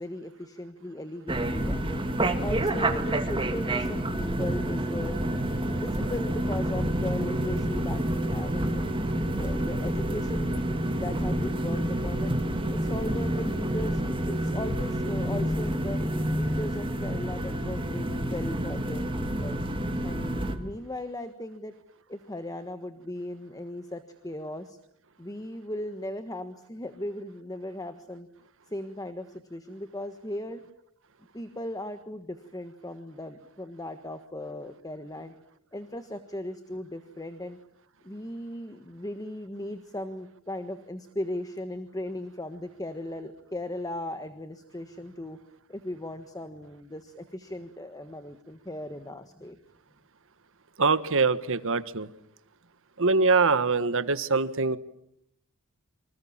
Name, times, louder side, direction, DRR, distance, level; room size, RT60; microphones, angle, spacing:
voice 1, 0.0-2.0 2.4-5.2 5.6-8.8 9.2-12.4 12.7-16.0 16.3-19.6 20.0-21.7 22.1-24.8 25.2-28.3 28.7-30.6 31.3-35.3 35.7-37.6 38.0-45.4 45.7-49.6, left 1 dB, 15° left, 9 dB, 1.4 m, -37 dB
sound 1, 1.3-20.6, right 1 dB, 25° right, 2.4 m, -28 dB
voice 2, 50.8-52.1 53.0-54.8, right 4 dB, 65° right, 13 dB, 1.4 m, -23 dB
28.0 x 25.5 x 7.4 m, 0.76 s
head